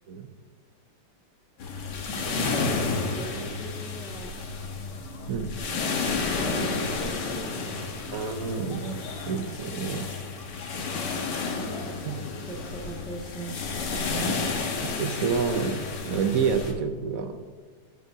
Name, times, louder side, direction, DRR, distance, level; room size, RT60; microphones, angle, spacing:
sound 1, 1.6-16.7, left 4 dB, 85° left, 1.9 m, -31 dB
voice 1, 2.3-4.5 5.7-6.0 6.3-7.9 11.6-14.7, right 2 dB, 5° left, -3 dB, 1.8 m, -41 dB
voice 2, 8.1-10.0 12.1-12.2 14.8-17.4, right 6 dB, 60° right, 7 dB, 1.0 m, -28 dB
14.5 x 9.7 x 2.8 m, 1.5 s
omnidirectional pair, 1.8 m